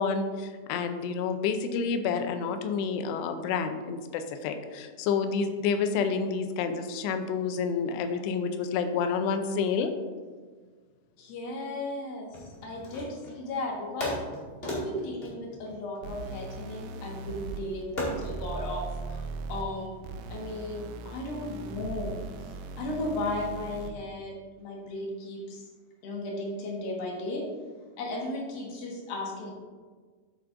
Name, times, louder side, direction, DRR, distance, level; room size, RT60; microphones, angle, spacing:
voice 1, 0.0-9.9, left 5 dB, 90° left, 7 dB, 2.8 m, -29 dB
voice 2, 11.2-14.2 14.6-20.0 20.3-22.2 22.8-25.7 26.0-27.5 28.0-29.5, left 2 dB, 65° left, -1 dB, 3.0 m, -35 dB
sound 1, 12.3-13.4 14.0-16.5 18.0-18.4, equal, 30° left, 1.1 m, -36 dB
sound 2, 16.0-24.0, right 3 dB, 90° right, 1.9 m, -39 dB
10.5 x 7.9 x 2.6 m, 1.5 s
omnidirectional pair, 4.7 m